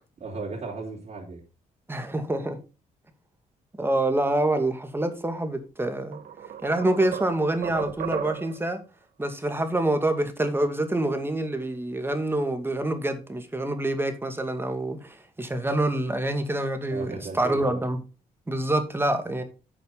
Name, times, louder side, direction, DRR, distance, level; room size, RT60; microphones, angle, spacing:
voice 1, 0.2-1.4 16.9-17.8, right 3 dB, 50° right, 4.0 m, -35 dB
voice 2, 1.9-2.6 3.8-6.2 6.6-8.8 9.2-18.0 18.5-19.4, right 1 dB, 15° right, 2.3 m, -26 dB
sound 1, 5.5-5.7 6.1-8.7, right 9 dB, 65° right, 1.3 m, -35 dB
12.0 x 6.9 x 4.0 m
cardioid pair, 90°, 15 cm